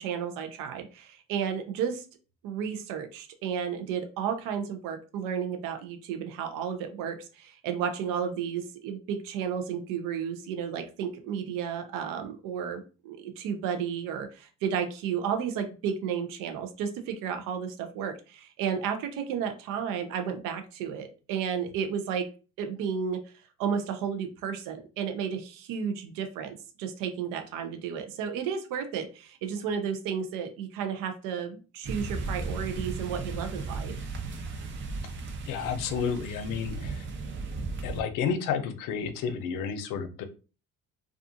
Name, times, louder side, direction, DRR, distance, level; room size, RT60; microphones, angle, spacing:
voice 1, 0.0-2.0 2.4-22.3 22.6-23.2 23.6-33.9, right 7 dB, 75° right, 7 dB, 0.6 m, -32 dB
sound 1, 31.8-38.0, right 3 dB, 35° right, 0.6 m, -36 dB
voice 2, 35.4-37.1 37.8-40.2, left 6 dB, 75° left, 9 dB, 0.6 m, -31 dB
2.4 x 2.4 x 2.6 m, 0.34 s
supercardioid pair, 85°, 32 cm